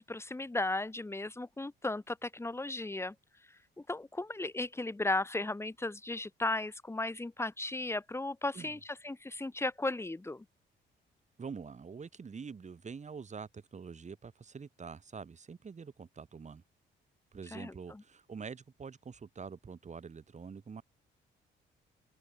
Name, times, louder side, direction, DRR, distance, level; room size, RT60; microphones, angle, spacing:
voice 1, 0.0-3.1 3.9-10.4 17.5-18.0, left 2 dB, 15° left, 1.4 m, -35 dB
voice 2, 11.4-16.6 17.3-20.8, right 5 dB, 35° right, 2.9 m, -46 dB
open air
cardioid pair, 90°, 20 cm